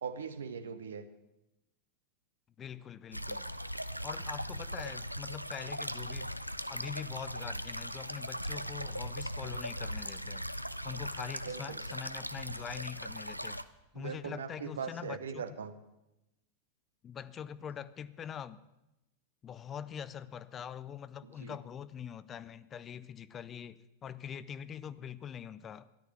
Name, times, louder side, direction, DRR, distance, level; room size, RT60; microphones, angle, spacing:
voice 1, 0.0-1.0 11.5-11.8 13.9-15.7 21.2-21.6, right 6 dB, 65° right, 11 dB, 1.0 m, -40 dB
voice 2, 2.6-3.5 4.0-6.4 6.7-10.5 10.8-13.6 13.9-15.6 17.0-18.6 19.4-25.9, left 8 dB, 25° left, 17 dB, 0.5 m, -44 dB
sound 1, 3.1-13.6, equal, 90° right, 0.5 m, -39 dB
13.5 x 11.5 x 7.4 m, 0.91 s
figure-of-eight pair, 90°, 0 cm